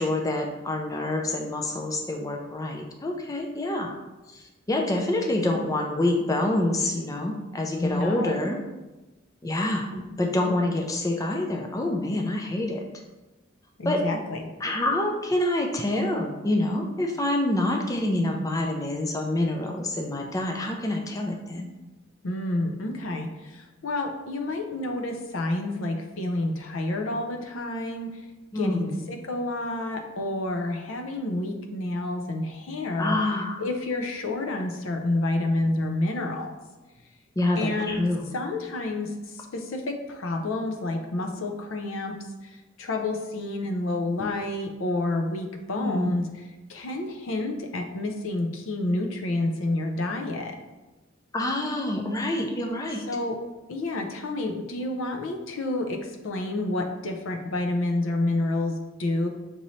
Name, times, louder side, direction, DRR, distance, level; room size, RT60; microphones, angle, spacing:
voice 1, 0.0-4.0 4.3-8.6 9.4-9.9 10.2-12.8 13.8-14.0 14.6-21.7 28.5-29.0 33.0-33.6 37.4-38.3 45.8-46.1 51.3-53.0, left 1 dB, 15° left, 1 dB, 0.4 m, -27 dB
voice 2, 7.8-8.3 9.9-10.0 13.8-14.5 22.2-28.1 28.6-33.2 33.6-36.5 37.6-38.0 38.3-42.1 42.4-46.3 46.7-50.6 53.1-53.4 53.7-59.3, left 2 dB, 75° left, 3 dB, 0.6 m, -29 dB
5.2 x 2.7 x 3.0 m, 1.1 s
head